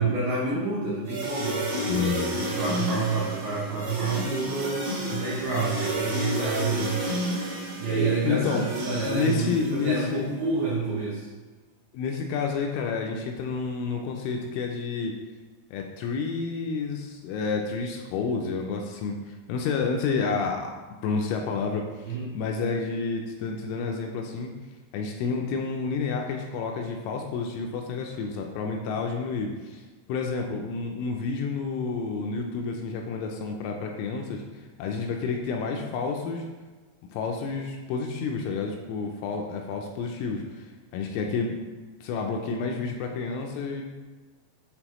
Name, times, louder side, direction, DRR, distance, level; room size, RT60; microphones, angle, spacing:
voice 1, 0.0-2.1 2.3-7.3 7.8-9.5 9.7-11.3 22.1-22.3, right 3 dB, 80° right, -6 dB, 2.2 m, -28 dB
sound 1, 1.1-10.2, right 1 dB, 60° right, 2.6 m, -31 dB
voice 2, 1.8-2.4 8.2-8.7 9.1-10.3 11.9-15.1 15.7-20.7 21.0-24.5 24.9-29.8 30.1-36.5 37.1-41.6 42.0-43.8, left 5 dB, 80° left, 2 dB, 2.9 m, -30 dB
8.8 x 3.9 x 3.0 m, 1.3 s
omnidirectional pair, 5.9 m